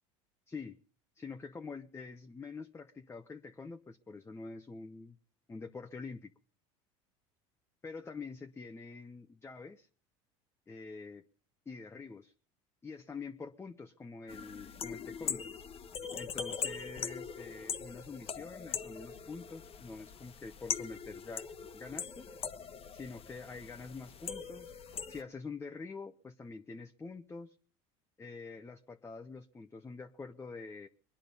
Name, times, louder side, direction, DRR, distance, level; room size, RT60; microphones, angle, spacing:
voice 1, 0.5-0.8 1.2-5.2 5.5-6.3 7.8-9.9 10.7-11.3 11.7-12.3 12.8-15.5 16.1-21.5 21.7-22.3 22.9-24.7 25.1-27.6 28.2-30.9, left 4 dB, 15° left, 7 dB, 0.8 m, -46 dB
sound 1, 14.3-25.2, left 7 dB, 40° left, 1.1 m, -41 dB
23.0 x 9.9 x 5.4 m, 0.43 s
supercardioid pair, 95°, 15 cm